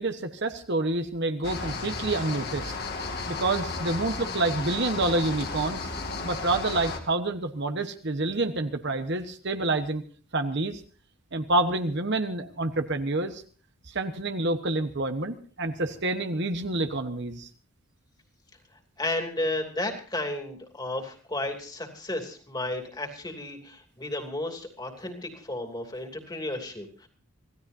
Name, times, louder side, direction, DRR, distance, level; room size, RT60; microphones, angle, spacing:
voice 1, 0.0-2.7 3.3-5.8 6.2-10.0 10.3-10.8 11.3-13.4 13.9-17.5, right 2 dB, 55° right, 7 dB, 1.2 m, -28 dB
sound 1, 1.4-7.0, left 3 dB, 50° left, 2.2 m, -34 dB
voice 2, 19.0-27.1, left 1 dB, 20° left, 4 dB, 2.8 m, -33 dB
27.0 x 16.0 x 2.7 m, 0.40 s
head